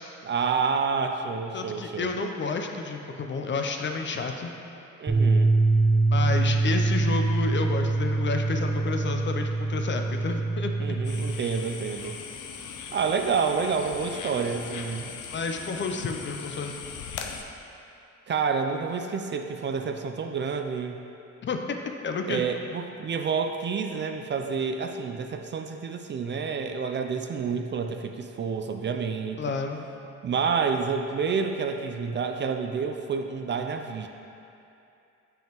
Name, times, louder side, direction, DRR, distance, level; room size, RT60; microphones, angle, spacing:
voice 1, 0.2-2.1 5.0-5.5 10.8-12.2 12.9-15.1 18.3-21.0 22.3-29.4 30.2-34.1, right 5 dB, 40° right, 5 dB, 0.4 m, -29 dB
voice 2, 1.5-4.5 6.1-11.0 15.3-16.7 21.4-21.6 22.0-22.5 29.4-29.9, left 4 dB, 40° left, 4 dB, 0.5 m, -30 dB
sound 1, 5.1-11.3, right 3 dB, 20° right, 0.9 m, -24 dB
sound 2, 11.0-17.4, left 6 dB, 80° left, 0.6 m, -39 dB
7.0 x 5.5 x 3.0 m, 2.7 s
cardioid pair, 90°, 30 cm